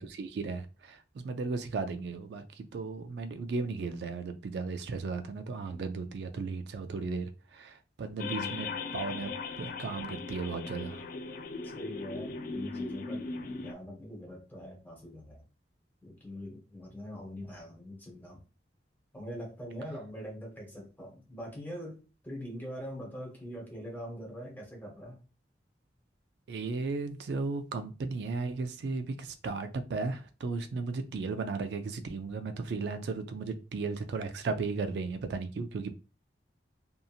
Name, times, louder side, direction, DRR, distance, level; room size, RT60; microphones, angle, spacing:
voice 1, 0.0-8.7 8.9-9.3 9.6-11.0 26.5-35.9, right 4 dB, 70° right, 0.3 m, -35 dB
voice 2, 8.1-8.6 11.6-15.4 16.0-18.4 19.1-25.2, equal, 10° left, 0.9 m, -43 dB
sound 1, 8.2-13.7, left 4 dB, 50° left, 0.3 m, -38 dB
2.8 x 2.6 x 2.4 m
head